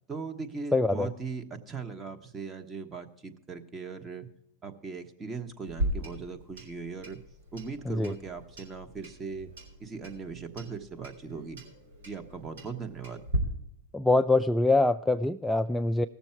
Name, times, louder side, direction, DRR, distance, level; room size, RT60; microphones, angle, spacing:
voice 1, 0.1-4.3 4.6-7.2 7.5-9.5 9.8-11.6 12.0-13.3, right 5 dB, 20° right, 6 dB, 1.2 m, -39 dB
voice 2, 0.7-1.1 7.9-8.1 13.9-16.1, left 2 dB, 5° left, 6 dB, 0.3 m, -24 dB
Clock, 5.6-13.4, equal, 85° right, 3.6 m, -38 dB
18.0 x 7.0 x 4.5 m, 0.78 s
hypercardioid pair, 115°, 0 cm